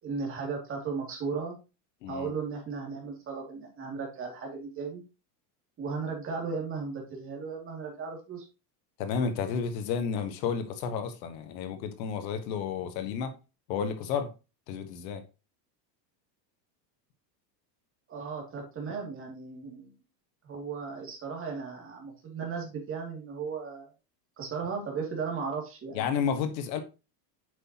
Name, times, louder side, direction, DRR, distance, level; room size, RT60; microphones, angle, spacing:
voice 1, 0.0-1.6 2.1-5.0 5.8-8.5 18.1-19.9 20.4-23.9 24.4-26.0, right 5 dB, 25° right, 2.4 m, -36 dB
voice 2, 2.0-2.3 9.0-13.3 13.7-14.3 14.7-15.2 25.9-26.8, left 6 dB, 85° left, 1.4 m, -31 dB
8.0 x 5.7 x 2.9 m
cardioid pair, 160°, 50 cm